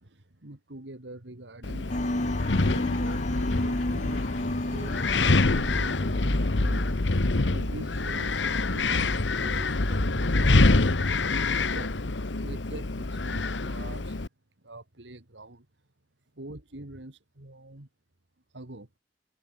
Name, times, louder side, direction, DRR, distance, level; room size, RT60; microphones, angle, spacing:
voice 1, 0.0-14.2 14.6-15.7 16.3-17.9 18.5-18.9, right 1 dB, 75° right, 2.4 m, -45 dB
Wind, 1.6-14.3, left 3 dB, 80° left, 1.3 m, -26 dB
sound 1, 1.9-7.0, left 1 dB, 45° left, 2.1 m, -33 dB
sound 2, 5.4-10.8, equal, 10° left, 0.6 m, -36 dB
head